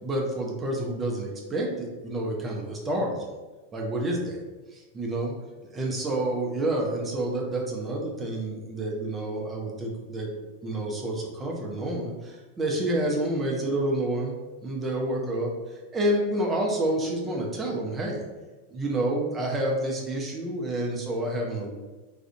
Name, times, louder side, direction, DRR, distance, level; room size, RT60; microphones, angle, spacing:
voice 1, 0.0-3.3 3.7-4.4 4.7-5.3 5.6-14.3 14.6-18.2 18.7-21.7, right 1 dB, 20° right, -1 dB, 0.4 m, -29 dB
2.4 x 2.0 x 2.5 m, 1.2 s
figure-of-eight pair, 90°, 0 cm